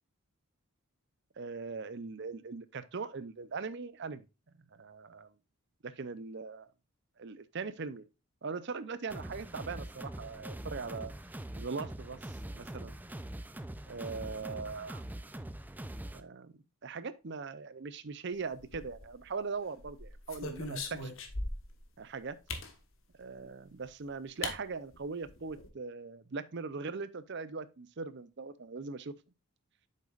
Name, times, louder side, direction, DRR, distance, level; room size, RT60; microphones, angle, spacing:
voice 1, 1.4-4.2 4.7-5.3 5.8-6.7 7.2-8.0 8.4-11.1 11.6-13.0 13.9-15.0 16.1-16.5 16.8-21.1 22.0-22.4 23.2-29.1, right 4 dB, 50° right, 0.6 m, -40 dB
sound 1, 9.1-16.2, right 1 dB, 10° right, 0.4 m, -43 dB
sound 2, 18.6-19.3 19.8-21.8 22.5-22.7 23.8-23.9 24.4-24.6 24.9-25.0 25.3-25.7, left 3 dB, 60° left, 1.3 m, -39 dB
8.4 x 6.6 x 2.4 m
head